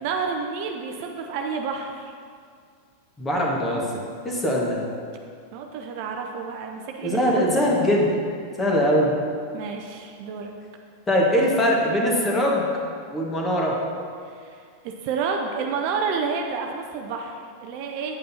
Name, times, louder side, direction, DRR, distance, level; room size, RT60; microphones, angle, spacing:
voice 1, 0.0-2.1 5.5-7.2 9.5-10.5 14.3-18.2, right 5 dB, 45° right, 3 dB, 0.6 m, -30 dB
voice 2, 3.2-3.8 4.2-4.8 7.0-8.2 8.6-9.1 11.1-12.7 13.1-13.7, equal, 15° left, -2 dB, 1.6 m, -21 dB
8.9 x 8.4 x 2.8 m, 2.2 s
figure-of-eight pair, 90°, 0 cm